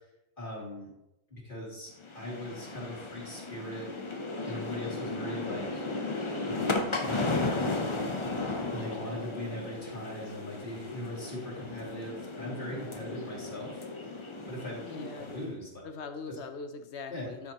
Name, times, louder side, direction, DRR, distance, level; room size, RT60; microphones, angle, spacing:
voice 1, 0.4-0.9 1.3-3.9 4.5-5.9 6.5-7.6 8.7-13.9 14.5-15.7 17.1-17.3, left 1 dB, 50° left, -6 dB, 2.8 m, -40 dB
sound 1, 2.0-15.5, left 3 dB, 30° left, 0.8 m, -35 dB
voice 2, 14.8-15.4 15.8-17.5, left 4 dB, 75° left, 7 dB, 1.0 m, -41 dB
13.0 x 6.3 x 2.9 m, 0.87 s
omnidirectional pair, 1.2 m